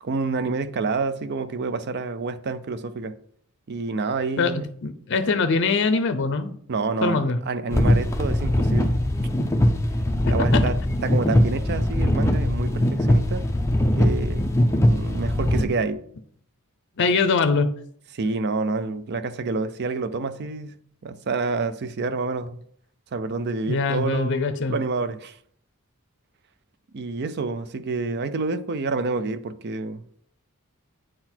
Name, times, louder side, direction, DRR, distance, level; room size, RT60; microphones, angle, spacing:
voice 1, 0.0-3.2 3.7-4.7 6.7-9.0 10.3-13.4 14.0-14.5 14.9-16.0 18.1-20.7 21.0-22.6 23.1-25.4 26.9-30.1, right 3 dB, 50° right, 0.5 m, -28 dB
voice 2, 4.4-6.6 7.0-7.4 10.2-10.7 17.0-17.7 23.7-24.7, left 4 dB, 55° left, 0.6 m, -23 dB
sound 1, 7.7-15.6, left 1 dB, 10° left, 0.6 m, -21 dB
8.7 x 4.0 x 4.4 m
head